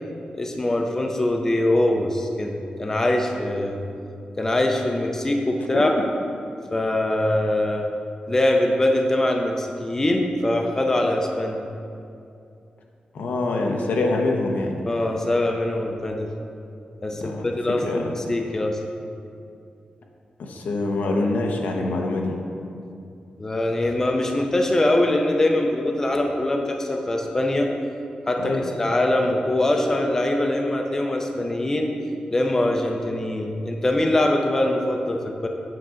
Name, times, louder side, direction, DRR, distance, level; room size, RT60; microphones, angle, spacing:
voice 1, 0.3-3.8 4.4-5.9 6.7-7.9 8.3-11.6 14.8-16.3 17.0-18.8 23.4-27.7 28.2-31.9 32.3-35.5, left 1 dB, 20° left, 2 dB, 0.5 m, -23 dB
voice 2, 13.1-14.8 17.2-17.5 17.8-18.1 20.4-22.3 28.4-28.6, left 2 dB, 80° left, 1 dB, 0.8 m, -25 dB
7.8 x 6.0 x 3.8 m, 2.6 s
wide cardioid pair, 165°, 3 cm